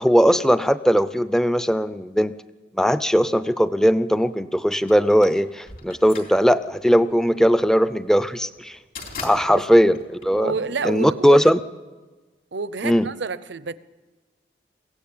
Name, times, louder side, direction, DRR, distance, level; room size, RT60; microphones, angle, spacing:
voice 1, 0.0-2.3 2.7-8.8 9.2-10.5 10.8-11.6 12.8-13.1, equal, 5° left, 14 dB, 0.6 m, -19 dB
sound 1, 4.9-11.0, left 4 dB, 50° left, 3.7 m, -40 dB
voice 2, 10.4-11.5 12.5-13.7, right 4 dB, 75° right, 16 dB, 0.7 m, -29 dB
22.5 x 16.5 x 8.6 m, 1.3 s
head